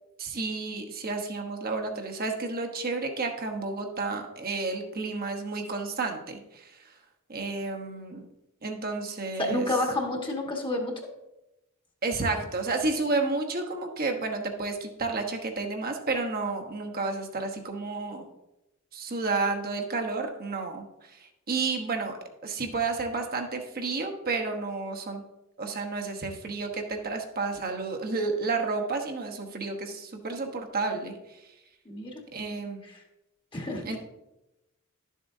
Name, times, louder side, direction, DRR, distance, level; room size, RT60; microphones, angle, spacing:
voice 1, 0.2-6.8 7.3-8.3 8.6-9.7 12.0-18.3 18.9-25.2 25.6-31.4 32.3-32.8 33.9-34.0, right 3 dB, 45° right, 3 dB, 1.1 m, -31 dB
voice 2, 9.4-10.9 31.8-32.1 32.9-33.0 33.5-34.0, left 1 dB, 25° left, 1 dB, 1.5 m, -29 dB
11.5 x 7.4 x 2.7 m, 0.95 s
head